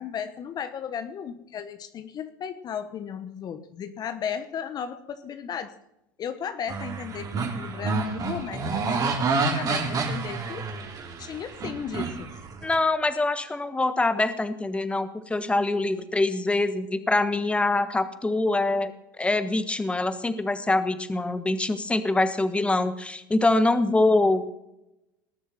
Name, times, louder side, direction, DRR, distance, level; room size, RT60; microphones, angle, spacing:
voice 1, 0.0-5.7 6.2-10.6 11.2-12.3, left 8 dB, 40° left, 11 dB, 1.1 m, -35 dB
sound 1, 6.7-12.7, right 4 dB, 35° right, 3.4 m, -29 dB
voice 2, 12.6-18.9 19.2-24.4, left 2 dB, 10° left, 11 dB, 1.3 m, -24 dB
19.5 x 7.1 x 7.3 m, 0.86 s
hypercardioid pair, 90°, 11 cm